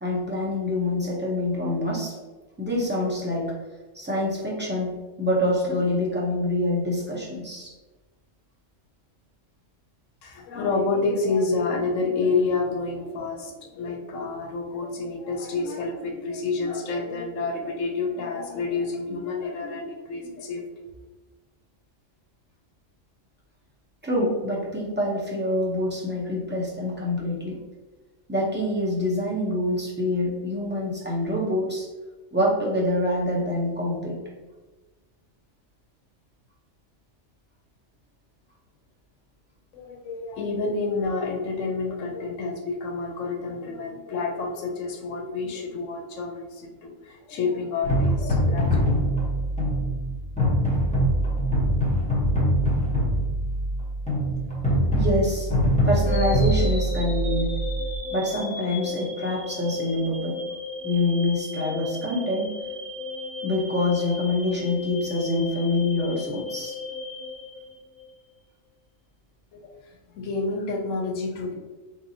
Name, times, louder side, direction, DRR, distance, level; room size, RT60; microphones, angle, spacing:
voice 1, 0.0-2.1 2.6-3.5 3.9-7.7 24.0-27.6 28.3-31.9 32.3-34.2 54.9-55.5 55.8-57.6 58.1-60.4 60.8-62.5 63.4-66.8, left 1 dB, 15° right, -4 dB, 0.4 m, -26 dB
voice 2, 10.2-20.6 39.7-49.0 69.5-69.7 70.1-71.5, left 3 dB, 80° left, 2 dB, 1.0 m, -29 dB
sound 1, 47.8-58.0, equal, 5° left, 0.8 m, -23 dB
sound 2, 56.1-68.2, left 4 dB, 55° right, 1.7 m, -35 dB
3.6 x 2.8 x 2.7 m, 1.2 s
omnidirectional pair, 1.3 m